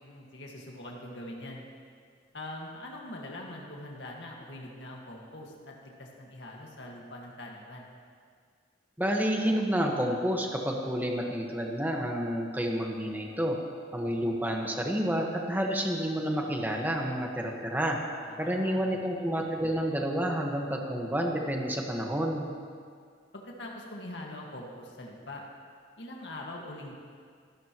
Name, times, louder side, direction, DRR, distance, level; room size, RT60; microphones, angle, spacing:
voice 1, 0.0-1.6 2.3-7.9 18.2-18.9 23.3-25.4 26.0-26.9, left 1 dB, 70° left, -1 dB, 1.8 m, -43 dB
voice 2, 9.0-13.6 13.9-18.0 18.4-22.5, equal, 10° right, 0 dB, 1.5 m, -29 dB
25.5 x 12.5 x 3.1 m, 2.1 s
head